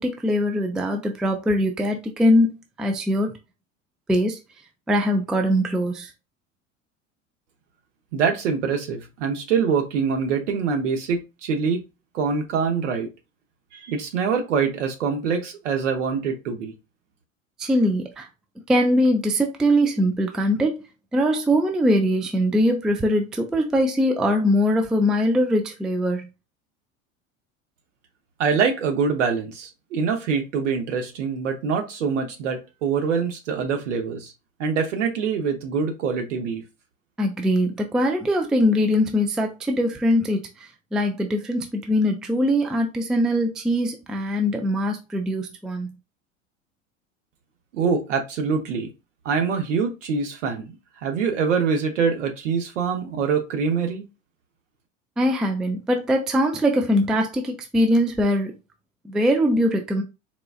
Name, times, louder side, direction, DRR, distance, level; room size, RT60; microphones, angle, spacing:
voice 1, 0.0-3.3 4.1-4.4 4.9-6.1 17.6-18.3 18.7-20.8 21.1-26.3 37.2-45.9 55.2-58.5 59.0-60.0, equal, ahead, 0.3 m, -22 dB
voice 2, 8.1-11.8 12.1-13.1 13.7-16.7 28.4-34.3 34.6-36.6 47.7-48.9 49.2-54.0, right 6 dB, 65° right, 1.0 m, -24 dB
4.0 x 2.3 x 2.4 m
figure-of-eight pair, 75°, 39 cm